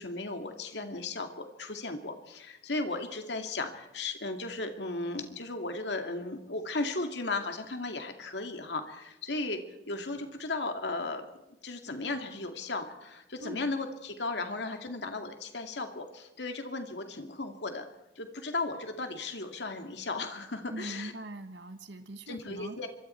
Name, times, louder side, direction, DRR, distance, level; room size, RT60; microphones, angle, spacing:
voice 1, 0.0-11.3 11.6-17.9 18.2-21.1 22.3-22.9, left 3 dB, 75° left, 5 dB, 2.3 m, -36 dB
voice 2, 20.7-22.8, right 1 dB, 85° right, 8 dB, 1.6 m, -41 dB
26.0 x 24.0 x 4.5 m, 0.93 s
head